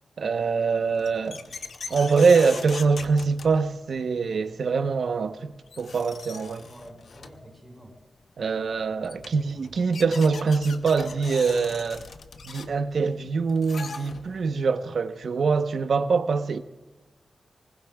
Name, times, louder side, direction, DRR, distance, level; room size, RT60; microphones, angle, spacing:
voice 1, 0.2-1.4 1.9-6.7 8.4-12.0 12.4-16.6, right 4 dB, 70° right, 0.9 m, -24 dB
sound 1, 0.8-4.0 5.3-5.4 5.7-7.5 8.7-8.8 9.0-14.5, left 4 dB, 70° left, 0.8 m, -41 dB
voice 2, 6.7-8.0 8.7-9.8, right 1 dB, 5° right, 5.3 m, -49 dB
24.5 x 20.0 x 2.3 m
wide cardioid pair, 90°, 0 cm